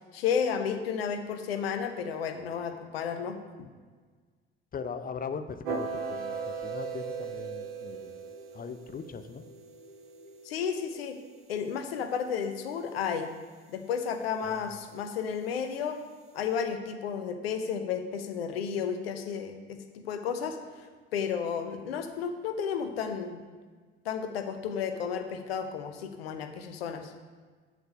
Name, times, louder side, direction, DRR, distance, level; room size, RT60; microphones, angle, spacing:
voice 1, 0.1-3.4 10.4-11.2 11.5-13.3 13.7-16.0 16.3-20.6 21.1-23.4 24.0-27.1, left 7 dB, 75° left, 7 dB, 0.9 m, -32 dB
voice 2, 4.7-8.2 8.5-9.4 14.5-14.7, left 6 dB, 30° left, 10 dB, 0.7 m, -39 dB
sound 1, 5.6-11.7, right 5 dB, 75° right, 1.0 m, -38 dB
8.0 x 6.8 x 5.2 m, 1.5 s
figure-of-eight pair, 55°, 30 cm